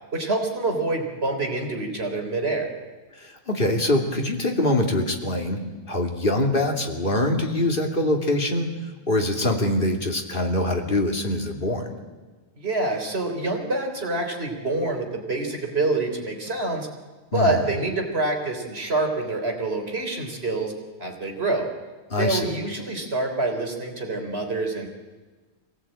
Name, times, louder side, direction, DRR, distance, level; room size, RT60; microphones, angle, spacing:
voice 1, 0.1-2.7 12.6-16.9 17.3-20.7 21.0-21.7 22.2-24.9, right 2 dB, 60° right, 3 dB, 3.9 m, -26 dB
voice 2, 3.2-5.6 5.9-8.7 9.1-11.9 17.3-17.6 22.1-22.5, left 1 dB, 50° left, 2 dB, 3.0 m, -24 dB
24.0 x 17.5 x 8.9 m, 1.3 s
omnidirectional pair, 1.2 m